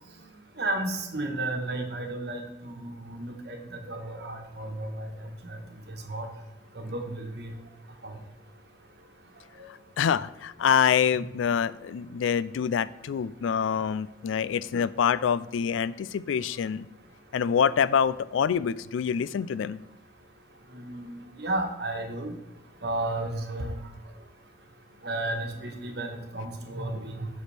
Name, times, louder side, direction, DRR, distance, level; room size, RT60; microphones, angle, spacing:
voice 1, 0.6-5.1 5.5-5.6 6.1-6.3 6.8-7.5 8.0-8.2 9.6-9.7 20.7-22.3 22.8-23.7 25.0-27.3, right 2 dB, 55° right, 3 dB, 1.2 m, -33 dB
voice 2, 10.0-16.9 17.3-19.8, left 7 dB, 90° left, 17 dB, 0.3 m, -26 dB
8.0 x 6.0 x 3.4 m, 0.99 s
head